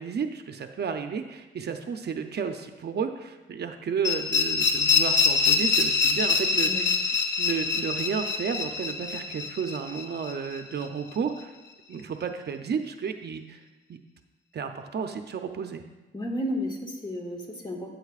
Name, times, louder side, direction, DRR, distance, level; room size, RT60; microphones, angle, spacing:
voice 1, 0.0-6.7 7.4-11.5 11.9-13.6 13.9-14.0 14.5-15.8, right 6 dB, 55° right, 6 dB, 0.6 m, -32 dB
sound 1, 4.0-10.9, left 4 dB, 70° left, 1.3 m, -25 dB
voice 2, 16.1-17.9, equal, 20° left, 0 dB, 1.7 m, -32 dB
13.0 x 9.1 x 2.4 m, 1.1 s
cardioid pair, 100°, 20 cm